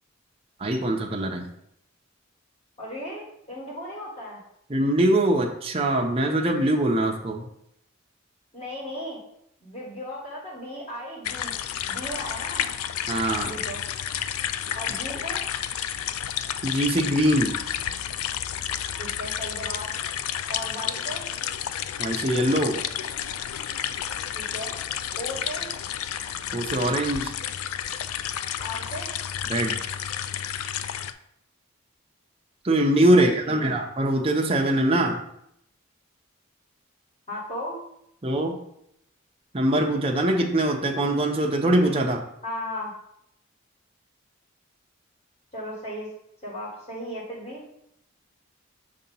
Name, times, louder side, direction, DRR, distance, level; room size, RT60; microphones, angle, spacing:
voice 1, 0.6-1.4 4.7-7.5 13.1-13.5 16.6-17.6 22.0-22.8 26.5-27.3 29.5-29.8 32.6-35.2 38.2-38.5 39.5-42.2, right 1 dB, 25° right, 1 dB, 0.6 m, -22 dB
voice 2, 2.8-4.4 8.5-9.2 9.6-11.6 11.8-12.7 13.4-13.8 14.7-15.4 19.0-19.9 20.5-21.3 24.3-24.8 25.2-25.7 28.6-29.1 33.1-33.8 37.3-37.8 42.4-42.9 45.5-46.1 46.4-47.6, left 1 dB, 30° left, -4 dB, 1.6 m, -36 dB
sound 1, 11.2-31.1, left 10 dB, 90° left, 0.4 m, -31 dB
6.6 x 2.9 x 5.4 m, 0.76 s
head